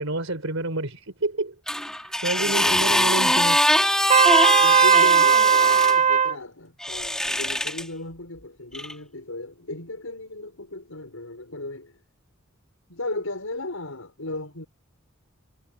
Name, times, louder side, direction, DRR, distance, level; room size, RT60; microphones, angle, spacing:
voice 1, 0.0-1.5 2.2-3.6, right 2 dB, 70° right, 4.7 m, -28 dB
sound 1, 1.7-5.9 6.8-7.8 8.7-8.9, left 1 dB, 5° left, 2.4 m, -22 dB
voice 2, 2.4-3.3 4.6-12.0 12.9-14.7, left 2 dB, 80° left, 6.3 m, -35 dB
Trumpet, 4.1-6.3, right 7 dB, 35° right, 0.6 m, -17 dB
head